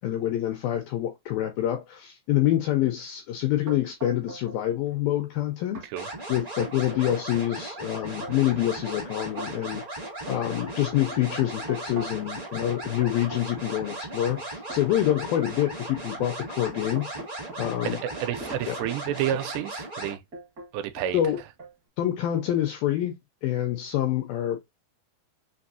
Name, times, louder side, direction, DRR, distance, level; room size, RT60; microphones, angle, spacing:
voice 1, 0.0-5.9 6.3-9.8 10.3-17.1 17.6-18.0 18.7-18.8 21.1-21.4 22.0-24.6, left 13 dB, 85° left, 2.1 m, -26 dB
sound 1, 3.7-4.6 4.9-5.4 5.7-5.9 6.3-7.5 8.0-12.3 12.7-15.2 15.8-16.0 16.5-19.5 20.3-20.7 21.0-21.7, right 2 dB, 60° right, 0.9 m, -41 dB
sound 2, 5.9-20.1, right 2 dB, 35° right, 0.6 m, -37 dB
voice 2, 17.8-20.2 20.7-21.2, right 10 dB, 85° right, 2.7 m, -30 dB
6.2 x 2.7 x 2.6 m
omnidirectional pair, 4.8 m